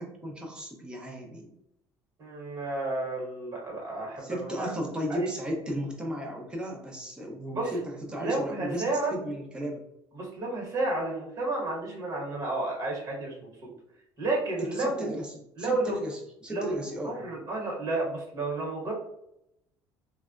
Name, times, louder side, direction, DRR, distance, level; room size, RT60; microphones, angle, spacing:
voice 1, 0.0-1.5 4.2-9.8 14.6-15.3 15.6-17.2, equal, 10° right, 0 dB, 0.6 m, -35 dB
voice 2, 2.2-4.8 5.1-5.3 7.5-7.7 8.2-9.1 10.1-13.7 14.2-15.2 15.6-16.0 16.5-16.7 17.0-18.9, right 2 dB, 40° right, -1 dB, 1.2 m, -31 dB
3.3 x 2.2 x 2.4 m, 0.80 s
cardioid pair, 145°, 8 cm